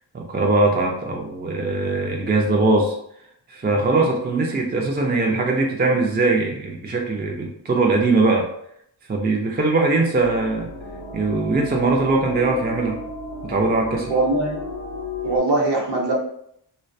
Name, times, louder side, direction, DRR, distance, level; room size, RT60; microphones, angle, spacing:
voice 1, 0.1-3.0 3.5-8.5 9.1-10.7 11.1-13.0 13.4-14.1, right 3 dB, 25° right, 1 dB, 0.3 m, -21 dB
sound 1, 10.2-15.4, left 2 dB, 60° left, 0.6 m, -34 dB
voice 2, 14.1-14.6 15.2-16.1, right 2 dB, 55° right, -2 dB, 0.8 m, -21 dB
2.3 x 2.2 x 2.6 m, 0.71 s
wide cardioid pair, 60°, 49 cm